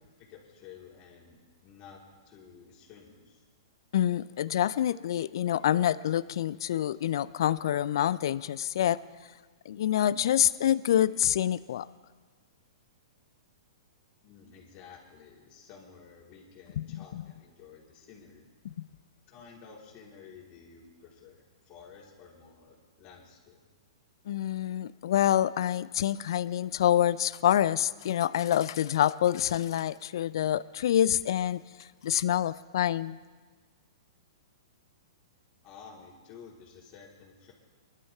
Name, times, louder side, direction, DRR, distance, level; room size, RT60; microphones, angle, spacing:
voice 1, 0.0-2.0 2.2-3.4 14.2-18.5 19.3-23.6 35.6-37.5, left 6 dB, 35° left, -3 dB, 4.0 m, -52 dB
voice 2, 3.9-9.0 9.7-11.9 16.8-17.2 24.3-33.2, left 11 dB, 60° left, 17 dB, 0.4 m, -27 dB
26.0 x 12.5 x 3.5 m, 1.4 s
figure-of-eight pair, 115°, 3 cm